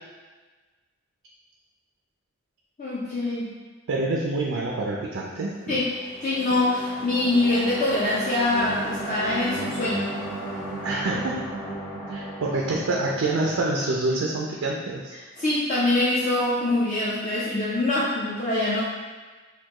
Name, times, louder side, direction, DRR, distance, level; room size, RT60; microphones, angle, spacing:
voice 1, 2.8-3.6 5.7-5.9 6.2-10.1 15.4-18.8, left 2 dB, 40° left, -8 dB, 0.4 m, -24 dB
voice 2, 3.9-5.8 10.8-11.4 12.1-15.2, right 2 dB, 80° right, -2 dB, 0.4 m, -27 dB
sound 1, 5.6-14.3, right 1 dB, 5° left, 0.7 m, -35 dB
4.2 x 2.2 x 2.9 m, 1.3 s
head